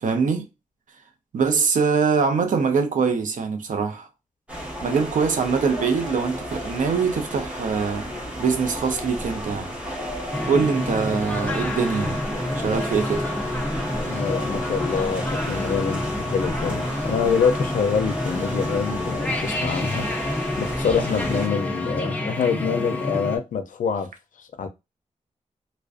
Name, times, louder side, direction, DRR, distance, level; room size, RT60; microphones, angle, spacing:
voice 1, 0.0-0.5 1.3-4.1 4.8-8.0 8.4-9.7 10.5-12.2 12.6-13.3, right 5 dB, 75° right, 0.5 m, -23 dB
sound 1, 4.5-21.5, equal, 10° right, 0.8 m, -33 dB
sound 2, 10.3-23.4, left 1 dB, 10° left, 0.4 m, -28 dB
voice 2, 14.1-20.1 20.6-24.1 24.4-24.7, left 6 dB, 85° left, 0.4 m, -25 dB
2.4 x 2.1 x 2.4 m
wide cardioid pair, 150°, 13 cm